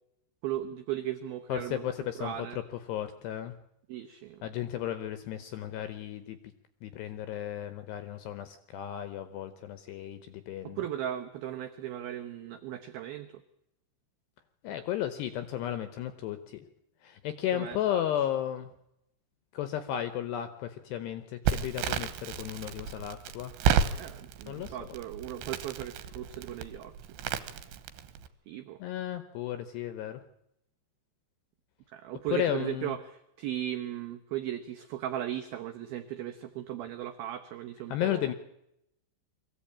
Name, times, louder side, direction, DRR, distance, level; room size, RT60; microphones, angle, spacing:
voice 1, 0.4-1.9 2.2-2.6 3.9-4.4 10.6-13.4 17.5-18.0 24.0-26.9 28.5-28.8 31.9-38.3, right 12 dB, 90° right, 7 dB, 2.1 m, -37 dB
voice 2, 1.5-2.5 2.9-3.6 4.4-6.4 6.8-10.8 14.6-16.6 17.0-18.7 19.5-23.5 24.5-24.8 28.8-30.2 32.3-33.0 37.9-38.3, left 11 dB, 75° left, 11 dB, 2.6 m, -34 dB
Crackle, 21.5-28.3, right 7 dB, 75° right, 3.1 m, -32 dB
23.0 x 15.5 x 8.6 m, 0.82 s
omnidirectional pair, 5.6 m